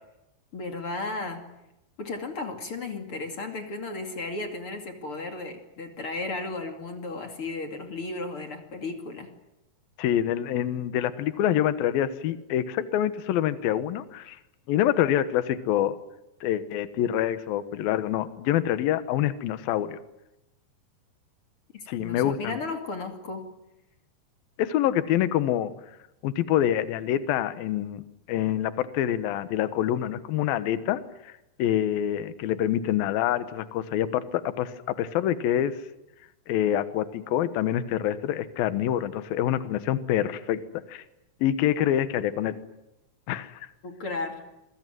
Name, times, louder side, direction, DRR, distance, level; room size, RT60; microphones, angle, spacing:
voice 1, 0.5-1.5 2.0-9.3 21.7-23.5 43.8-44.5, left 3 dB, 35° left, 5 dB, 2.5 m, -34 dB
voice 2, 10.0-14.4 14.7-16.0 16.4-20.0 21.9-22.6 24.6-25.7 26.2-28.0 28.3-31.3 31.6-35.8 36.5-40.6 40.9-41.0 41.4-42.6 43.3-43.7, left 11 dB, 65° left, 12 dB, 2.6 m, -26 dB
26.5 x 22.5 x 9.3 m, 0.89 s
omnidirectional pair, 5.3 m